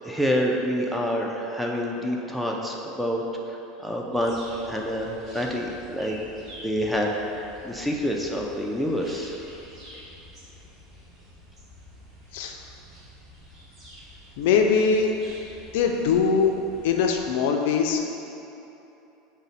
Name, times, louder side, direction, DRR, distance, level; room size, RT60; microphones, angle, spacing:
voice 1, 0.0-3.2 3.5-6.2 6.6-9.4, equal, ahead, -1 dB, 0.3 m, -27 dB
sound 1, 4.1-17.3, equal, 30° right, 0.7 m, -48 dB
voice 2, 14.4-15.1 15.7-16.5 16.8-18.0, left 5 dB, 70° left, 3 dB, 0.3 m, -21 dB
4.8 x 2.1 x 4.0 m, 2.9 s
supercardioid pair, 145°, 0 cm